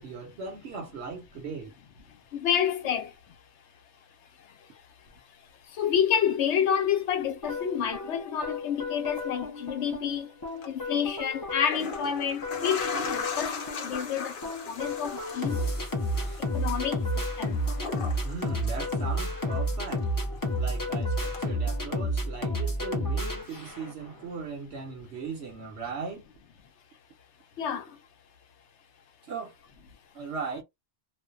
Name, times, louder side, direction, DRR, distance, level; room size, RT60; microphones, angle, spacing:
voice 1, 0.0-1.7 16.2-16.4 18.2-20.1 20.5-26.3 29.3-29.6 30.1-30.6, right 4 dB, 70° right, 0.9 m, -38 dB
voice 2, 2.3-3.1 5.8-10.3 10.7-13.5 13.8-14.3 14.7-15.6 16.5-17.6 27.6-27.8, left 8 dB, 80° left, 0.9 m, -28 dB
sound 1, 7.4-24.1, equal, 25° left, 0.5 m, -31 dB
sound 2, 10.5-10.7 11.5-19.5 19.8-20.9 21.3-21.4, left 4 dB, 55° left, 0.8 m, -38 dB
2.5 x 2.1 x 2.3 m
omnidirectional pair, 1.2 m